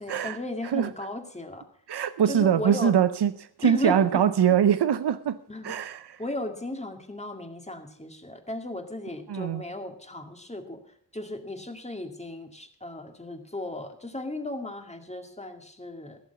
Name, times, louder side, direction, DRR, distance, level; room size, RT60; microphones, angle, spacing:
voice 1, 0.0-1.6 2.3-3.0 3.6-4.3 5.5-5.7 6.2-10.8 11.1-16.2, left 1 dB, 15° left, 4 dB, 2.1 m, -36 dB
voice 2, 1.9-3.3 3.6-5.4 5.6-6.2 9.3-9.6, right 8 dB, 85° right, 13 dB, 0.7 m, -23 dB
16.5 x 7.0 x 7.0 m, 0.64 s
wide cardioid pair, 75°, 39 cm